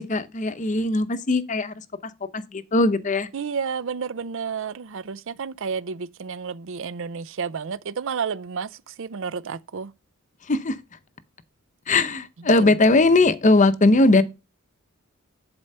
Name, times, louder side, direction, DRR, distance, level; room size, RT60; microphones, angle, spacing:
voice 1, 0.0-1.7 2.3-3.3 10.5-10.8 11.9-14.2, left 2 dB, 35° left, 0.7 m, -19 dB
voice 2, 3.3-9.9 12.6-12.7, right 6 dB, 60° right, 0.5 m, -31 dB
11.0 x 4.4 x 5.4 m
head